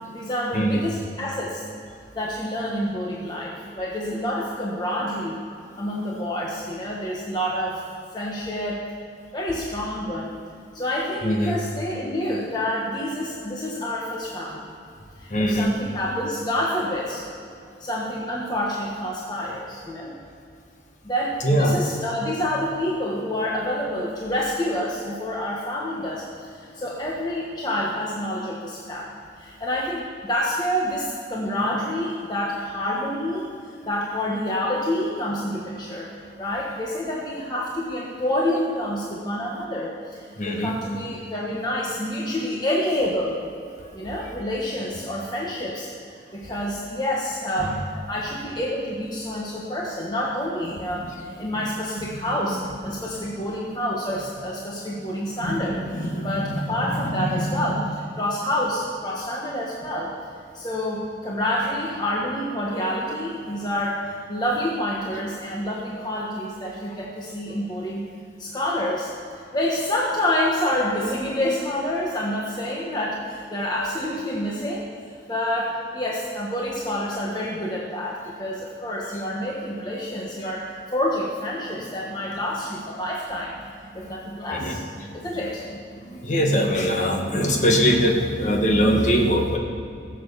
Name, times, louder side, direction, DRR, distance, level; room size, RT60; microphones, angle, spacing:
voice 1, 0.1-1.6 2.1-5.4 5.8-7.8 8.1-8.8 9.3-10.3 10.7-14.7 15.2-17.2 17.8-20.2 21.0-29.1 29.4-33.5 33.8-43.4 43.9-45.9 46.3-60.1 60.5-68.0 68.4-69.1 69.5-74.9 75.3-80.7 80.9-83.5 83.9-84.8 85.1-85.6, left 1 dB, 25° left, -3 dB, 1.2 m, -28 dB
voice 2, 11.2-11.6 15.3-15.7 21.4-21.8 40.4-40.7 55.4-56.6 57.1-57.4 84.0-84.1 84.5-84.8 86.0-89.6, equal, 40° left, 2 dB, 1.4 m, -22 dB
14.5 x 7.7 x 6.7 m, 2.5 s
head